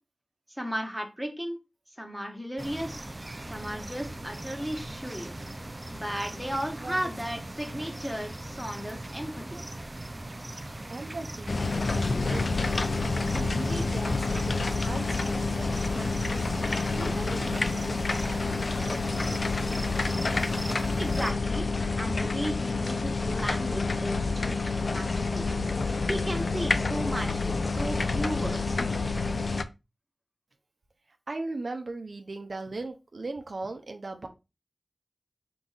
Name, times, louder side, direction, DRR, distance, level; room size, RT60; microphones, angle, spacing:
voice 1, 0.5-1.6 2.0-3.0 3.5-5.4 5.9-9.6 21.0-21.7 22.0-25.4 26.1-28.8, equal, 5° right, 3 dB, 1.3 m, -35 dB
sound 1, 2.6-21.3, right 1 dB, 30° right, 0.4 m, -40 dB
voice 2, 6.8-7.1 7.8-7.9 10.5-10.6 10.9-12.8 13.3-19.1 31.1-34.3, right 3 dB, 75° right, 5 dB, 0.6 m, -39 dB
sound 2, 11.5-29.6, left 3 dB, 70° left, 0.4 m, -28 dB
4.6 x 3.9 x 2.4 m, 0.26 s
wide cardioid pair, 55°, 0 cm